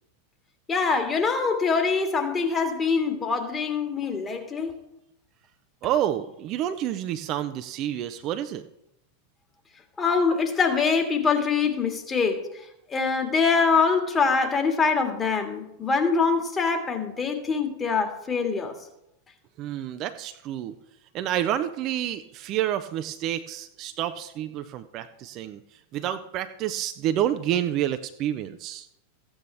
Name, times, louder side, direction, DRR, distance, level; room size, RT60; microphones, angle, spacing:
voice 1, 0.7-4.7 10.0-18.7, left 5 dB, 20° left, 4 dB, 1.9 m, -24 dB
voice 2, 5.8-8.6 19.6-20.8 21.1-25.6 25.9-28.9, right 11 dB, 35° right, 9 dB, 0.6 m, -29 dB
15.0 x 8.8 x 3.4 m, 0.81 s
figure-of-eight pair, 90°, 0 cm